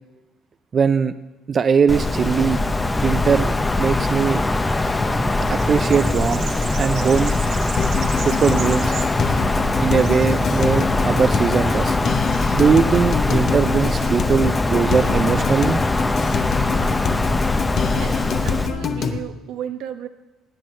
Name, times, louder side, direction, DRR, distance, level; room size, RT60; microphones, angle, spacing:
voice 1, 0.7-1.1 1.5-2.6 3.0-4.4 5.5-6.5 6.8-7.4 8.3-9.0 9.8-12.0 12.5-15.8, right 6 dB, 35° right, 11 dB, 0.4 m, -20 dB
Wind, 1.9-18.7, left 2 dB, 15° left, 0.7 m, -22 dB
sound 1, 4.7-14.4, right 7 dB, 65° right, 1.5 m, -39 dB
sound 2, 7.8-19.2, left 6 dB, 50° left, 1.0 m, -26 dB
voice 2, 17.9-20.1, right 9 dB, 80° right, 8 dB, 1.0 m, -33 dB
17.5 x 9.7 x 4.5 m, 1.2 s
cardioid pair, 105°, 0 cm